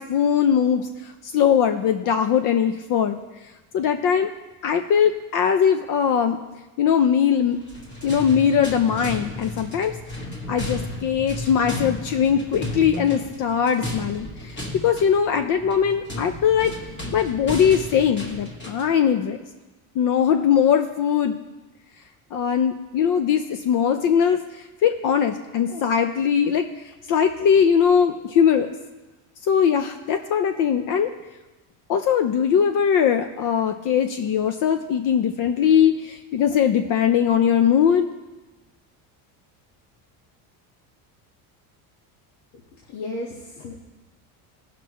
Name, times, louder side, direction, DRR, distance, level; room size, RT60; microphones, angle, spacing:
voice 1, 0.0-3.2 3.7-4.3 4.6-6.4 6.8-7.6 8.0-10.0 10.5-16.7 17.1-19.4 20.0-21.4 22.3-26.7 27.1-28.7 29.4-31.1 31.9-38.1, left 8 dB, 50° left, 7 dB, 0.6 m, -20 dB
sound 1, 7.5-19.0, left 1 dB, 25° left, 1.5 m, -34 dB
voice 2, 42.5-43.7, left 2 dB, 90° left, -5 dB, 1.6 m, -35 dB
17.5 x 5.9 x 3.1 m, 1.1 s
cardioid pair, 160°, 41 cm